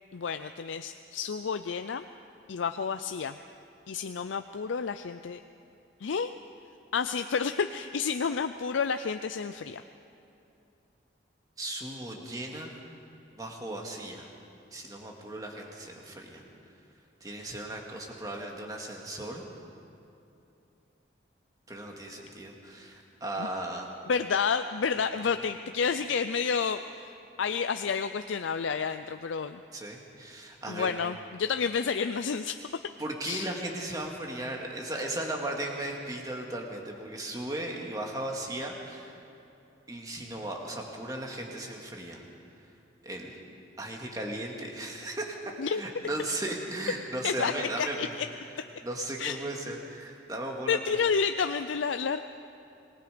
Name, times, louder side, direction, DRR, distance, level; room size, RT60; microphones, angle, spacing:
voice 1, 0.1-2.0 2.5-3.4 3.9-5.4 6.0-6.3 6.9-9.8 23.4-23.5 24.1-29.6 30.7-32.6 33.2-33.5 45.6-45.8 47.2-48.3 49.2-49.4 50.7-52.2, left 6 dB, 90° left, 9 dB, 0.5 m, -30 dB
voice 2, 11.6-12.8 13.4-14.3 14.7-16.4 17.2-19.4 21.7-23.9 29.7-30.9 33.0-39.1 39.9-42.3 43.0-43.3 43.8-48.1 48.8-50.8, right 1 dB, 20° right, 0 dB, 2.1 m, -36 dB
26.5 x 19.5 x 5.1 m, 2.7 s
head